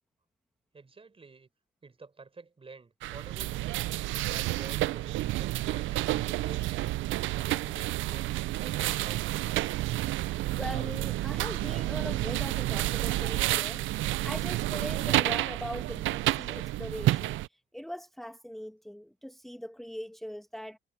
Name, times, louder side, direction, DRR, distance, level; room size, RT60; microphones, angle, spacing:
voice 1, 0.7-1.5 1.8-3.8 4.3-6.8 7.3-9.4, right 4 dB, 30° right, 4.3 m, -50 dB
sound 1, 3.0-17.5, right 16 dB, 80° right, 0.4 m, -30 dB
sound 2, 5.2-10.5, right 7 dB, 50° right, 4.5 m, -57 dB
voice 2, 10.5-17.4 17.7-20.8, equal, ahead, 1.4 m, -41 dB
cardioid pair, 90°, 20 cm